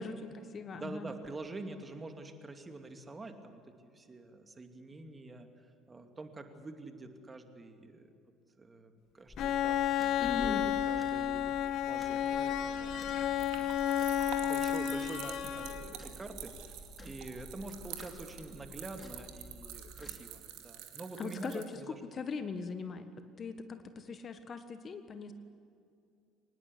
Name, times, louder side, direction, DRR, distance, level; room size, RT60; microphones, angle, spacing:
voice 1, 0.0-1.1 10.2-10.6 21.2-23.1 23.4-25.3, left 5 dB, 35° left, 10 dB, 1.4 m, -40 dB
voice 2, 0.7-5.5 5.9-8.1 8.6-11.6 11.9-13.8 14.2-16.7 17.0-22.0, right 2 dB, 20° right, 6 dB, 2.5 m, -46 dB
sound 1, 9.3-20.2, equal, 20° left, 4.0 m, -50 dB
Bowed string instrument, 9.4-16.1, left 10 dB, 55° left, 1.0 m, -32 dB
sound 2, 11.6-21.6, right 10 dB, 60° right, 2.4 m, -48 dB
24.5 x 20.0 x 8.4 m, 2.5 s
figure-of-eight pair, 60°, 0 cm